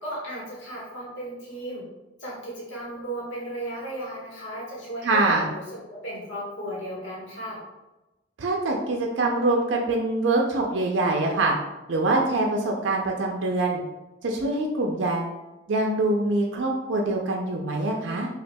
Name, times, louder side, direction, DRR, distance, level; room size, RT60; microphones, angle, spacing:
voice 1, 0.0-1.8 2.2-7.6, right 1 dB, 85° left, -6 dB, 1.2 m, -35 dB
voice 2, 5.0-5.4 8.4-11.5 11.9-13.8 14.2-15.3 15.7-18.3, right 2 dB, 75° right, 0 dB, 0.4 m, -24 dB
5.2 x 2.4 x 2.2 m, 1.0 s
head